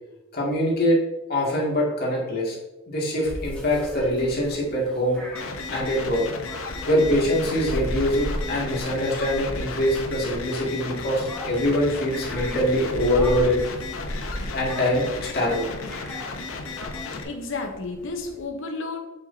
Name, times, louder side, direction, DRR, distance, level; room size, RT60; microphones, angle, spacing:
voice 1, 0.3-1.0 1.3-2.6 2.9-5.2 5.7-6.2 6.9-13.6 14.5-15.7, equal, 50° left, -4 dB, 2.2 m, -23 dB
sound 1, 3.2-18.5, equal, 5° left, 1.5 m, -37 dB
sound 2, 5.3-17.2, left 3 dB, 90° left, 0.9 m, -34 dB
voice 2, 17.2-19.0, left 3 dB, 70° left, 3 dB, 0.9 m, -32 dB
8.0 x 6.9 x 2.8 m, 1.0 s
head